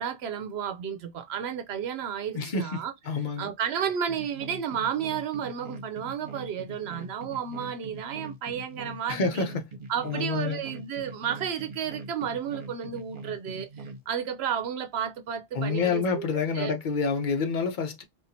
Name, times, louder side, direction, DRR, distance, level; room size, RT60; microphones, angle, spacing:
voice 1, 0.0-2.9 3.4-9.5 9.9-16.2 16.5-16.7, right 8 dB, 85° right, 0.8 m, -32 dB
voice 2, 2.3-3.5 9.1-9.7 10.0-10.6 15.5-18.0, left 4 dB, 50° left, 0.8 m, -28 dB
sound 1, 4.1-14.0, right 3 dB, 55° right, 1.0 m, -42 dB
4.2 x 2.5 x 2.7 m
omnidirectional pair, 1.0 m